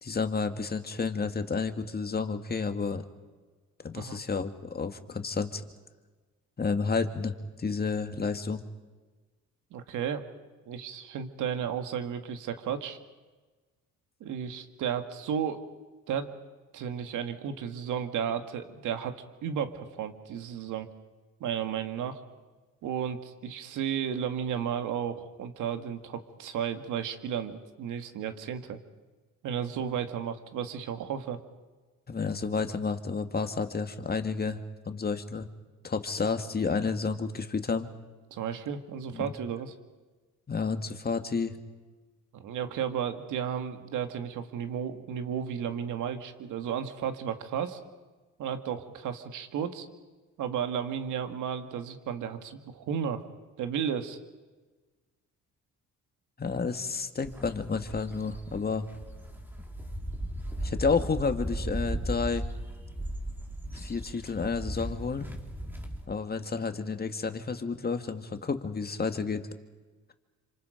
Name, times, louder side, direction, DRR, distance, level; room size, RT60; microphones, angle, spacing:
voice 1, 0.0-3.1 3.8-5.6 6.6-8.6 32.1-34.6 34.9-35.5 35.8-37.9 39.1-39.3 40.5-41.6 56.4-58.9 60.6-62.5 63.7-65.3 66.1-69.5, left 4 dB, 30° left, 7 dB, 2.0 m, -31 dB
voice 2, 9.7-10.2 10.7-13.0 14.2-15.6 16.1-16.3 16.7-19.1 19.4-20.9 21.4-22.2 22.8-28.8 29.4-31.4 38.3-39.7 42.3-47.8 48.4-49.9 50.4-53.2 53.6-54.2, right 8 dB, 85° right, 8 dB, 2.1 m, -33 dB
sound 1, 57.2-66.1, right 1 dB, 5° right, 3.6 m, -37 dB
28.0 x 26.5 x 5.2 m, 1.3 s
cardioid pair, 90°, 30 cm